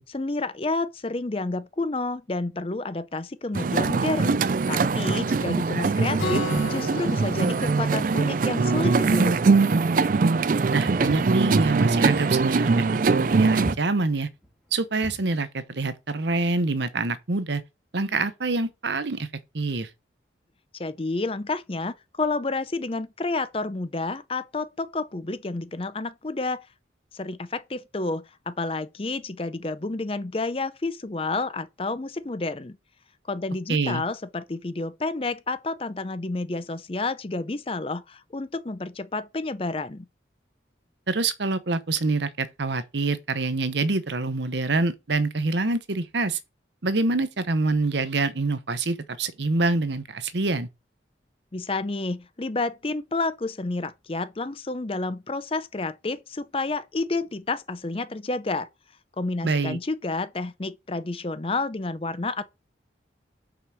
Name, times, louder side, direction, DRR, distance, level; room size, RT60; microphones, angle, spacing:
voice 1, 0.1-4.4 4.7-9.4 20.8-26.7 27.1-32.8 33.3-40.0 51.5-58.7 59.2-62.4, left 3 dB, 30° left, 0.6 m, -30 dB
sound 1, 3.5-13.7, right 4 dB, 45° right, 0.4 m, -22 dB
Acoustic guitar, 6.2-9.9, left 2 dB, 80° left, 3.0 m, -35 dB
voice 2, 10.7-12.9 13.3-14.3 14.7-17.6 17.9-19.3 19.5-19.9 33.7-34.0 41.1-46.4 46.8-50.7 59.4-59.8, right 3 dB, 65° right, 0.9 m, -26 dB
Walk footsteps, 10.9-15.3, right 1 dB, ahead, 1.7 m, -39 dB
5.8 x 4.9 x 6.1 m
head